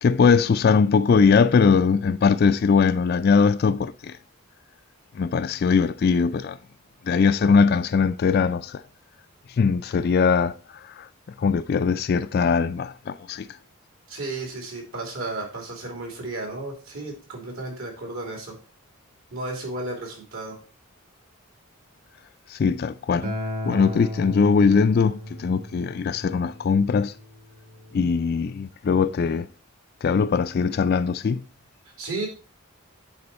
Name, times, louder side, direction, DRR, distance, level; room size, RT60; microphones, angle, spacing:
voice 1, 0.0-4.2 5.2-6.6 7.1-8.8 9.6-11.1 11.4-13.5 22.5-23.3 23.6-27.1 27.9-29.5 30.0-31.4, left 5 dB, 45° left, 0.3 m, -21 dB
voice 2, 14.1-18.6 19.3-20.6 32.0-32.3, right 2 dB, 65° right, 2.9 m, -33 dB
Acoustic guitar, 23.2-28.4, equal, 45° right, 2.4 m, -35 dB
9.6 x 4.4 x 4.2 m
head